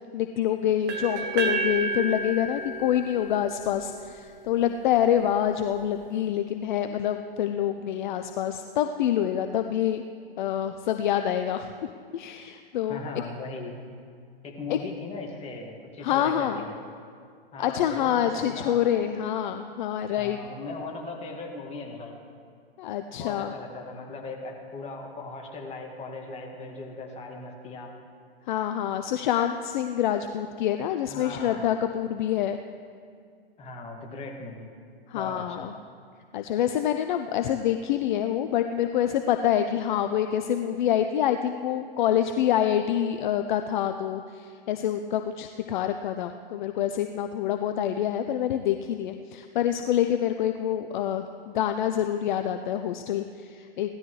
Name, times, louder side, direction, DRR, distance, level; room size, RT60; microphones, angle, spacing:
voice 1, 0.1-10.0 10.4-11.7 12.1-13.0 14.7-14.8 16.0-16.6 17.6-20.4 22.8-23.5 28.5-32.6 35.1-35.7 36.3-54.0, left 10 dB, 50° left, 7 dB, 0.6 m, -26 dB
sound 1, 0.9-4.8, right 3 dB, 35° right, 1.6 m, -32 dB
voice 2, 12.9-13.9 14.4-16.7 17.5-18.8 20.2-22.2 23.2-27.9 31.1-31.6 33.6-34.7 35.1-35.7, left 3 dB, 20° left, 0 dB, 2.0 m, -38 dB
17.5 x 13.0 x 3.2 m, 2.2 s
hypercardioid pair, 115°, 31 cm